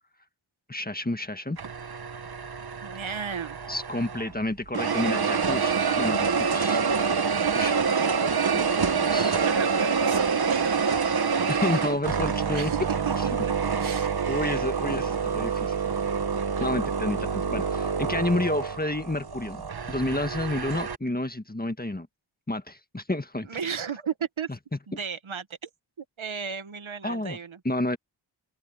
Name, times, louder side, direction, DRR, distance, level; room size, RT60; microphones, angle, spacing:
voice 1, 0.7-1.6 3.7-6.8 7.5-7.7 8.3-8.6 9.0-9.4 11.5-12.7 14.3-15.7 16.6-22.1 22.5-23.5 27.0-27.4 27.6-28.0, left 1 dB, 20° left, 1.7 m, -30 dB
sound 1, 1.6-4.3 4.7-21.0, right 5 dB, 50° right, 1.2 m, -27 dB
voice 2, 2.8-3.6 9.4-10.8 12.5-13.5 13.8-14.4 16.5-16.8 23.5-24.5 24.9-25.7 26.2-27.6, right 7 dB, 70° right, 1.6 m, -34 dB
open air
wide cardioid pair, 60°, 49 cm